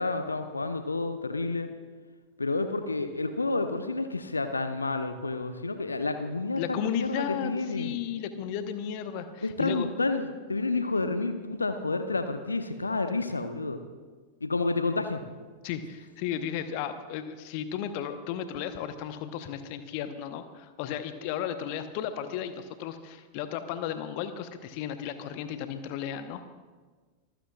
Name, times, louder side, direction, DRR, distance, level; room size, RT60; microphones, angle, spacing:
voice 1, 0.0-1.7 2.4-7.9 9.4-13.8 14.4-15.2, left 3 dB, 80° left, 9 dB, 0.8 m, -30 dB
voice 2, 6.6-9.9 15.6-26.4, left 9 dB, 45° left, 10 dB, 1.0 m, -34 dB
25.0 x 15.5 x 2.4 m, 1.4 s
figure-of-eight pair, 90°, 0 cm